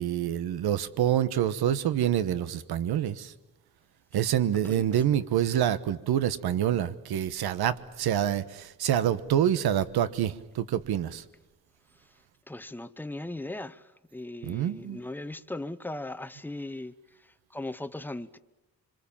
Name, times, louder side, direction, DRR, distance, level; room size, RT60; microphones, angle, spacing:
voice 1, 0.0-3.3 4.1-11.2 14.4-15.0, right 10 dB, 90° right, 1.2 m, -27 dB
voice 2, 12.5-13.8 14.1-16.9 17.5-18.4, left 2 dB, 5° left, 0.8 m, -38 dB
26.5 x 25.5 x 7.3 m
cardioid pair, 125°, 37 cm